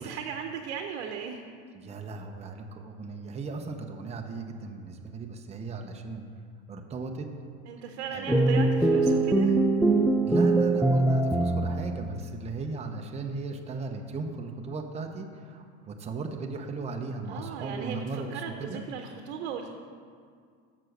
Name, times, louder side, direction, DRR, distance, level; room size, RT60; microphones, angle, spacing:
voice 1, 0.0-1.4 7.7-9.6 17.3-19.7, right 7 dB, 80° right, 4 dB, 0.8 m, -37 dB
voice 2, 1.7-6.2 6.7-7.3 8.1-8.4 10.2-18.8, right 3 dB, 20° right, 4 dB, 0.7 m, -37 dB
sound 1, 8.3-12.0, right 2 dB, ahead, 0.3 m, -23 dB
7.5 x 6.1 x 6.5 m, 2.1 s
supercardioid pair, 125°, 33 cm